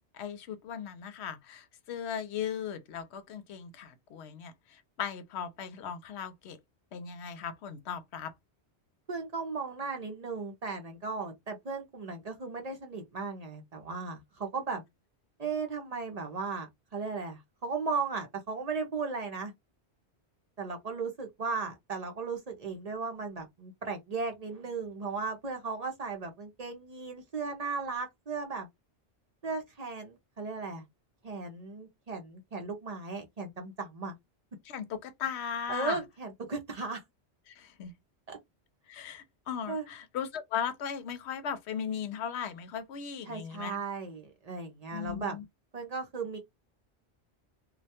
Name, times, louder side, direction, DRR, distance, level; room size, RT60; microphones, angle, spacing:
voice 1, 0.0-6.6 6.9-8.3 34.6-36.0 37.5-37.9 38.9-43.8 44.9-45.4, left 8 dB, 80° left, 0.8 m, -37 dB
voice 2, 9.1-14.8 15.4-19.5 20.6-28.7 29.4-30.8 31.2-34.2 35.7-37.0 38.3-38.4 39.7-39.9 43.3-45.4 45.7-46.4, right 4 dB, 50° right, 0.5 m, -36 dB
2.2 x 2.2 x 2.7 m
omnidirectional pair, 1.1 m